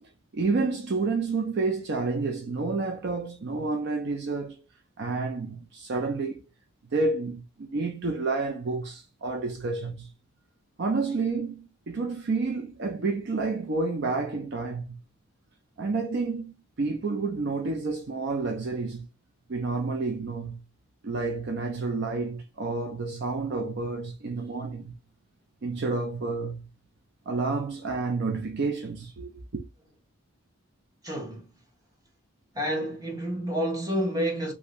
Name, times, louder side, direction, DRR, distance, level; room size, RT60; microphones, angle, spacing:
voice 1, 0.0-4.6 5.0-6.4 6.9-10.1 10.8-15.0 15.8-19.1 19.5-20.6 21.0-24.9 25.6-26.7 27.3-29.6, right 3 dB, 50° right, 0.4 m, -30 dB
voice 2, 31.0-31.4 32.5-34.5, equal, 15° right, 0.8 m, -29 dB
2.6 x 2.5 x 2.9 m
head